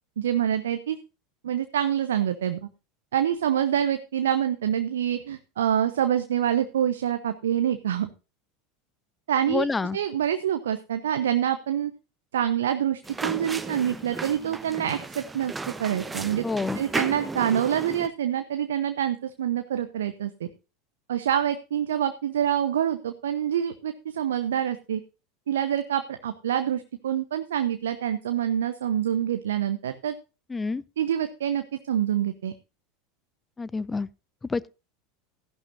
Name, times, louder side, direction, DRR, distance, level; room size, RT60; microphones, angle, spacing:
voice 1, 0.2-1.0 1.4-2.7 3.1-8.1 9.3-9.7 9.9-11.9 12.3-15.5 15.8-16.4 16.7-20.5 21.1-25.0 25.5-30.1 31.0-32.5, right 10 dB, 70° right, 0.9 m, -26 dB
voice 2, 9.5-10.0 16.4-16.8 30.5-30.8 33.6-34.1 34.5-34.7, left 4 dB, 15° left, 0.6 m, -28 dB
sound 1, 13.0-18.1, right 3 dB, 15° right, 1.1 m, -34 dB
15.0 x 11.5 x 2.6 m
figure-of-eight pair, 80°, 0 cm